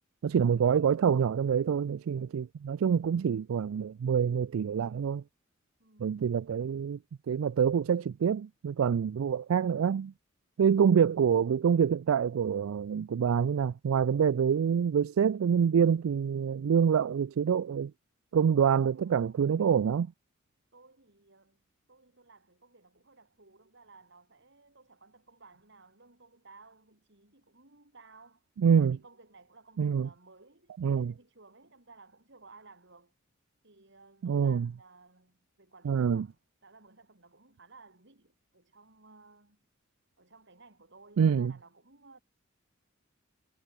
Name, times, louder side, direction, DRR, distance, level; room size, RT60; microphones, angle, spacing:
voice 1, 0.2-5.2 6.0-7.0 7.3-10.1 10.6-17.9 18.3-20.1 28.6-29.0 29.8-30.1 30.8-31.1 34.2-34.7 35.8-36.3 41.2-41.5, right 7 dB, 85° right, 0.4 m, -26 dB
voice 2, 5.8-6.2 18.9-19.4 20.7-21.6 21.9-28.5 28.8-33.1 33.6-39.6 40.2-42.2, right 3 dB, 60° right, 4.6 m, -57 dB
head